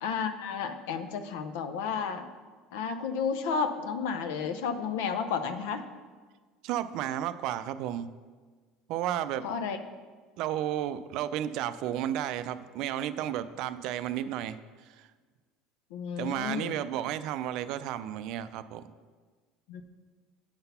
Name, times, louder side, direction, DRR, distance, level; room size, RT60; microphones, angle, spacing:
voice 1, 0.0-2.3 2.7-5.8 9.4-9.8 15.9-16.8 19.7-19.8, left 6 dB, 80° left, 9 dB, 0.6 m, -32 dB
voice 2, 6.6-8.1 8.9-9.5 10.4-14.6 15.0-15.1 16.2-18.9, right 11 dB, 65° right, 13 dB, 0.4 m, -32 dB
8.6 x 4.0 x 5.6 m, 1.5 s
supercardioid pair, 100°, 0 cm